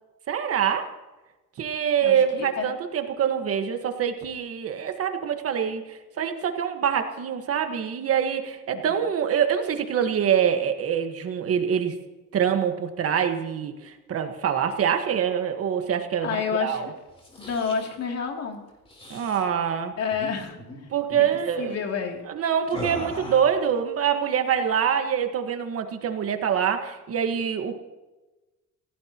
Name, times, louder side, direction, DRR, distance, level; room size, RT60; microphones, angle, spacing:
voice 1, 0.3-0.9 1.6-11.9 12.3-16.9 19.1-19.9 20.9-21.7 22.3-27.8, right 8 dB, 45° right, 6 dB, 1.5 m, -25 dB
voice 2, 2.0-2.7 8.7-8.8 16.2-16.9 17.4-18.7 20.0-20.6 21.2-21.3 21.6-22.2, left 6 dB, 50° left, 2 dB, 2.9 m, -29 dB
sound 1, 17.1-17.9 18.8-19.4 20.1-20.3 20.6-20.8 21.1-21.4 22.7-23.6, left 1 dB, 15° left, 3.6 m, -38 dB
28.0 x 16.5 x 3.0 m, 1.1 s
cardioid pair, 160°, 32 cm